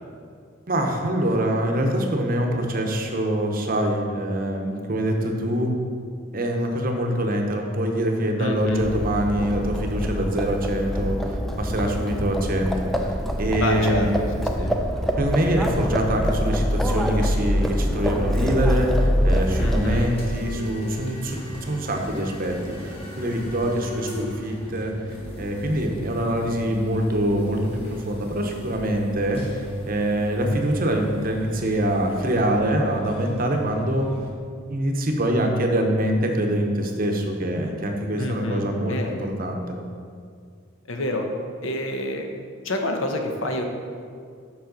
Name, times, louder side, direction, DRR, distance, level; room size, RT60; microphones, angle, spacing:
voice 1, 0.7-5.7 6.3-14.7 15.2-34.1 34.7-39.8, right 1 dB, 45° right, 3 dB, 0.7 m, -24 dB
voice 2, 8.4-8.9 13.6-14.1 14.4-14.7 19.6-20.1 38.2-39.3 40.9-41.3 41.6-43.6, left 1 dB, 70° left, 3 dB, 0.8 m, -28 dB
Livestock farm animals working animals, 8.6-20.2, equal, ahead, 0.3 m, -25 dB
sound 1, 19.3-34.3, equal, 30° left, 1.2 m, -36 dB
7.1 x 5.7 x 3.9 m, 2.2 s
head